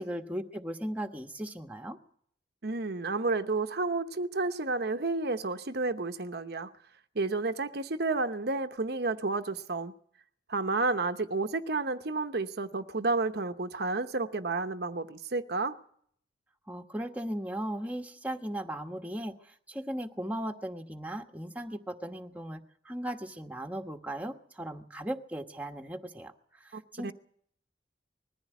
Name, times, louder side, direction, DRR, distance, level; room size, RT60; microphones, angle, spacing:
voice 1, 0.0-2.0 16.7-26.3 26.6-27.1, right 1 dB, 10° right, 1.3 m, -37 dB
voice 2, 2.6-6.7 7.1-9.9 10.5-15.8 26.7-27.1, right 3 dB, 60° right, 0.9 m, -31 dB
20.5 x 15.0 x 9.2 m
head